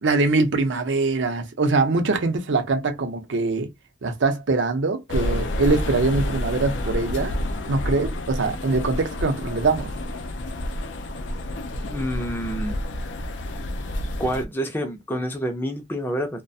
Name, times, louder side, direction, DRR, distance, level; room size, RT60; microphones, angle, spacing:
voice 1, 0.0-3.7 4.0-7.3 7.7-9.9, right 3 dB, 90° right, 0.6 m, -23 dB
sound 1, 5.1-14.5, left 1 dB, 85° left, 0.4 m, -29 dB
voice 2, 11.9-12.8 14.2-16.4, equal, 10° left, 0.4 m, -28 dB
2.3 x 2.1 x 2.6 m
head